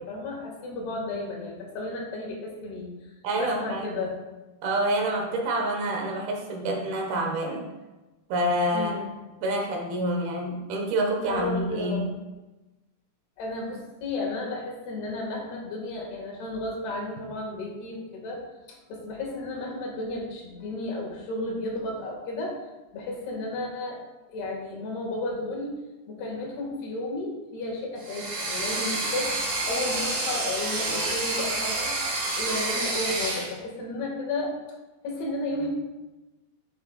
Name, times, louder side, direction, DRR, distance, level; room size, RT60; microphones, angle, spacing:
voice 1, 0.0-2.9 3.4-4.2 8.7-9.1 11.2-12.0 13.4-18.4 18.7-22.6 22.9-24.0 24.3-25.8 26.1-31.9 32.4-34.6 35.0-35.7, left 2 dB, 80° left, -1 dB, 4.0 m, -33 dB
voice 2, 3.2-4.0 4.6-7.7 8.3-8.9 9.4-12.1, right 1 dB, 70° right, 1 dB, 3.1 m, -27 dB
sound 1, 28.0-33.5, right 2 dB, 55° right, 3.8 m, -29 dB
12.5 x 8.5 x 2.4 m, 1.1 s
omnidirectional pair, 4.6 m